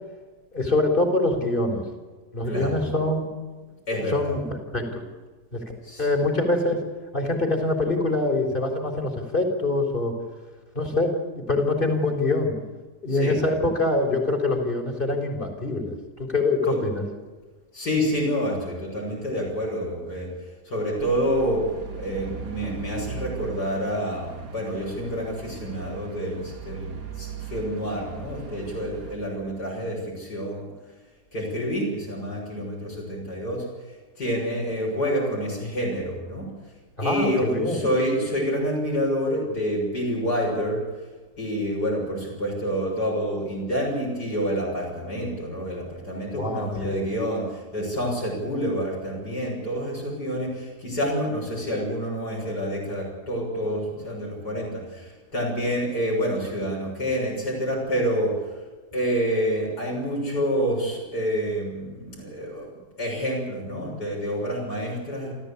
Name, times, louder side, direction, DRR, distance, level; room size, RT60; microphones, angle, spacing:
voice 1, 0.5-1.8 2.3-3.3 3.9-4.4 4.7-5.0 5.5-5.6 6.0-6.8 7.1-10.1 10.8-12.5 13.0-17.0 37.0-37.8 46.4-47.0, left 2 dB, 30° left, 2 dB, 4.0 m, -24 dB
voice 2, 2.4-2.9 3.9-4.4 5.8-6.1 13.1-13.4 16.7-16.8 17.7-20.3 20.7-21.7 21.9-30.7 31.3-33.7 34.2-36.5 37.0-40.8 41.4-58.6 58.9-62.7 63.0-65.3, equal, 70° left, -3 dB, 7.2 m, -28 dB
sound 1, 21.0-29.2, right 5 dB, 70° right, 2.8 m, -38 dB
29.5 x 14.0 x 8.5 m, 1.3 s
omnidirectional pair, 1.8 m